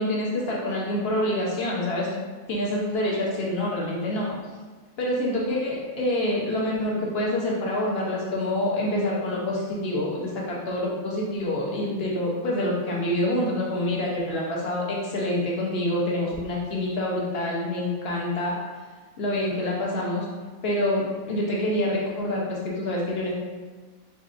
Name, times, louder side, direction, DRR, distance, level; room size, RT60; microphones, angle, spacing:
voice 1, 0.0-2.2 2.5-4.4 5.0-18.6 19.2-20.3 20.6-23.3, left 1 dB, 45° left, -3 dB, 1.0 m, -26 dB
4.0 x 3.9 x 2.5 m, 1.4 s
omnidirectional pair, 1.6 m